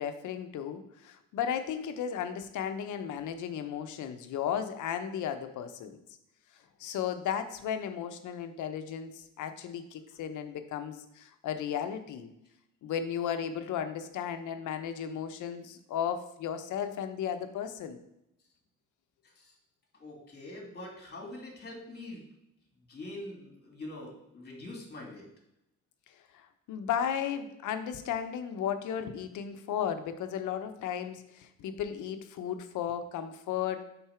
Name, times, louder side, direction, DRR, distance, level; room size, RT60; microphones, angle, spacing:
voice 1, 0.0-5.9 6.8-12.3 12.8-18.0 26.3-33.9, left 8 dB, 80° left, 8 dB, 0.7 m, -35 dB
voice 2, 19.2-19.6 19.9-22.2 22.9-25.3, left 1 dB, 35° left, 0 dB, 2.3 m, -44 dB
5.6 x 4.0 x 5.7 m, 0.82 s
cardioid pair, 90°, 30 cm